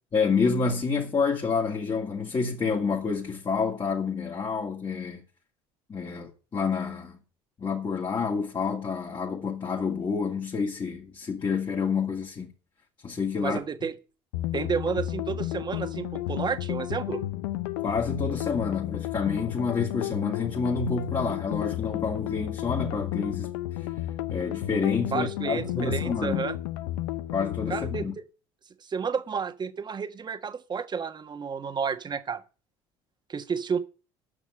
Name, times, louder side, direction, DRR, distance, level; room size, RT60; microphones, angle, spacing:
voice 1, 0.1-5.2 5.9-7.2 7.6-12.5 13.0-13.6 17.8-23.9 24.3-26.4 27.3-28.1, left 5 dB, 35° left, 2.5 m, -28 dB
voice 2, 13.4-13.9 14.5-17.2 25.1-26.6 27.7-28.2 28.8-32.4 33.3-33.8, right 6 dB, 35° right, 1.4 m, -31 dB
sound 1, 14.3-28.1, left 15 dB, 85° left, 0.7 m, -32 dB
9.1 x 6.3 x 8.6 m
hypercardioid pair, 75°, 13 cm